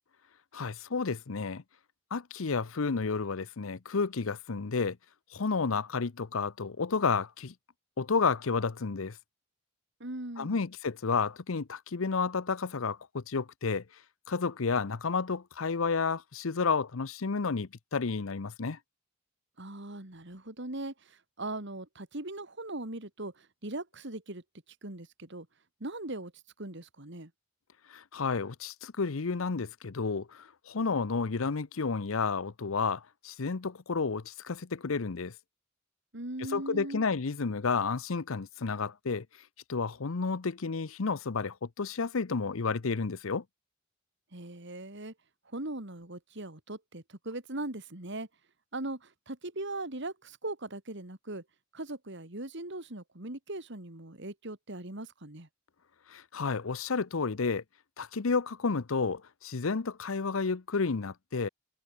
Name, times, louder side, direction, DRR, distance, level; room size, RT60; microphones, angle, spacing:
voice 1, 0.5-1.6 2.1-5.0 5.3-7.5 8.0-9.2 10.4-13.8 14.3-18.8 27.9-35.3 36.5-39.3 39.7-43.4 56.1-57.6 58.0-61.5, left 4 dB, 85° left, 0.8 m, -31 dB
voice 2, 10.0-10.6 19.6-25.5 25.8-26.3 26.6-27.3 36.1-37.0 44.3-45.1 45.4-48.3 48.7-51.4 51.7-55.5, right 2 dB, 60° right, 3.0 m, -40 dB
head